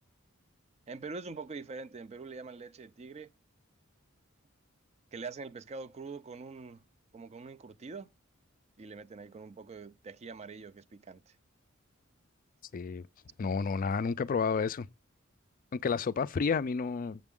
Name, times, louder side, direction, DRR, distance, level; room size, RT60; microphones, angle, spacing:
voice 1, 0.9-3.3 5.1-6.8 7.1-8.1 8.8-11.3, right 4 dB, 30° right, 0.4 m, -44 dB
voice 2, 12.7-13.0 13.4-14.9 15.7-17.2, left 5 dB, 40° left, 0.4 m, -30 dB
7.5 x 7.1 x 3.6 m
head